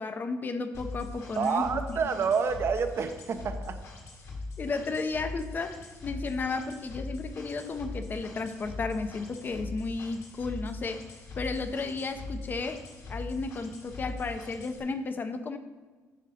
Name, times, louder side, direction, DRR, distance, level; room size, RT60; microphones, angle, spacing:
voice 1, 0.0-2.1 4.6-12.8 13.1-15.6, left 3 dB, 35° left, 9 dB, 0.6 m, -33 dB
sound 1, 0.7-14.8, left 2 dB, 55° left, 1.6 m, -41 dB
voice 2, 1.4-3.8, right 6 dB, 45° right, 8 dB, 0.7 m, -28 dB
9.2 x 5.2 x 4.2 m, 1.3 s
cardioid pair, 105°, 6 cm